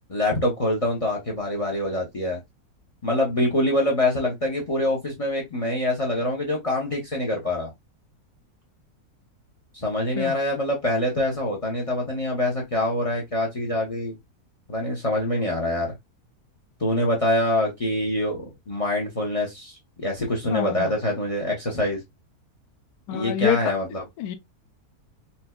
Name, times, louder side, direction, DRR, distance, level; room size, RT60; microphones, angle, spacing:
voice 1, 0.1-2.4 3.0-7.7 9.7-14.2 14.7-15.9 16.8-22.0 23.1-24.0, left 1 dB, 45° left, 0.4 m, -25 dB
voice 2, 20.5-20.9 23.1-23.7 24.2-24.3, left 10 dB, 85° left, 1.1 m, -26 dB
4.1 x 2.2 x 2.2 m
omnidirectional pair, 1.6 m